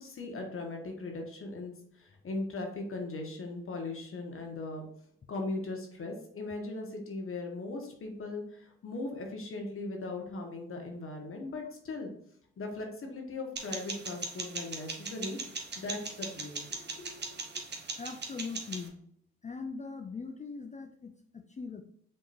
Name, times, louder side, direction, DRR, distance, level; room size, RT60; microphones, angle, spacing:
voice 1, 0.0-4.9 5.3-12.1 12.6-17.4, left 2 dB, 45° left, 2 dB, 1.4 m, -39 dB
sound 1, 13.6-18.9, right 3 dB, 35° right, 1.1 m, -40 dB
voice 2, 18.0-19.0 19.4-21.8, left 4 dB, 25° left, 6 dB, 0.5 m, -41 dB
5.5 x 3.6 x 2.6 m, 0.66 s
supercardioid pair, 65°, 30 cm